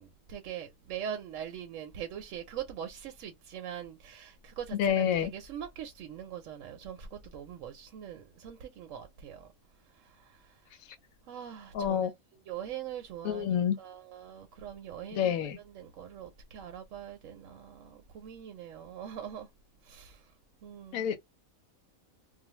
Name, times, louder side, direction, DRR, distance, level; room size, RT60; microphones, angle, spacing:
voice 1, 0.0-9.5 9.9-10.6 11.3-12.1 12.5-19.5 19.8-20.3 20.6-21.1, right 9 dB, 70° right, 0.9 m, -42 dB
voice 2, 4.7-5.3 11.7-12.1 13.2-13.8 15.1-15.6 20.9-21.2, left 8 dB, 85° left, 1.0 m, -28 dB
2.4 x 2.2 x 2.9 m
omnidirectional pair, 1.4 m